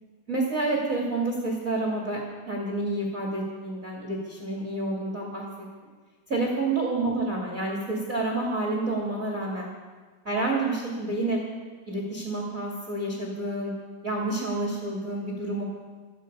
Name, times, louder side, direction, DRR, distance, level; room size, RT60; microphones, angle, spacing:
voice 1, 0.3-2.2 2.5-5.5 6.3-9.7 10.2-11.4 11.9-13.7 14.0-15.6, right 2 dB, 30° right, -1 dB, 1.8 m, -29 dB
17.0 x 13.5 x 5.4 m, 1.4 s
omnidirectional pair, 4.8 m